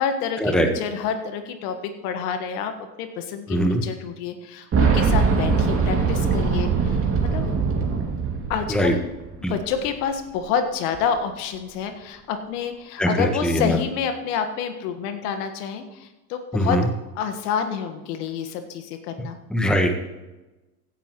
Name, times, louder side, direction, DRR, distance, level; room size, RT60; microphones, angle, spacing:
voice 1, 0.0-2.7 3.0-7.4 8.5-9.0 9.5-16.8 17.1-19.4, left 7 dB, 65° left, 7 dB, 1.6 m, -28 dB
voice 2, 3.5-3.8 8.7-8.9 9.4-9.5 13.0-13.8 16.5-16.9 19.2-20.0, equal, ahead, 5 dB, 1.2 m, -21 dB
Boom, 4.7-9.5 9.7-9.8 10.9-11.0, right 5 dB, 25° right, 2.4 m, -22 dB
16.0 x 9.7 x 3.1 m, 1.1 s
hypercardioid pair, 100°, 49 cm